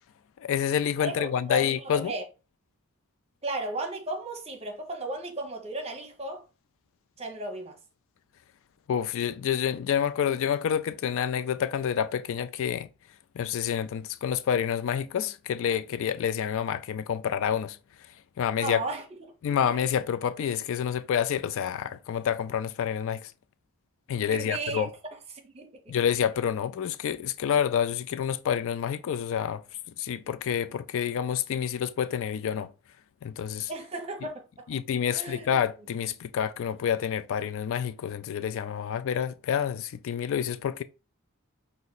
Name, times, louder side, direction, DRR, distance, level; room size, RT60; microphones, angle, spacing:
voice 1, 0.4-2.1 8.9-12.9 13.4-17.8 18.4-18.8 19.4-23.3 24.1-24.9 25.9-29.6 30.0-32.7 33.2-33.7 34.7-40.8, left 8 dB, 60° left, 0.3 m, -28 dB
voice 2, 1.0-2.2 3.4-6.4 7.2-7.8 18.6-19.2 19.5-19.6 24.2-24.9 25.3-25.9 33.7-34.4 35.1-35.5 35.8-35.9, right 2 dB, 25° right, 0.9 m, -35 dB
5.0 x 2.6 x 4.1 m
head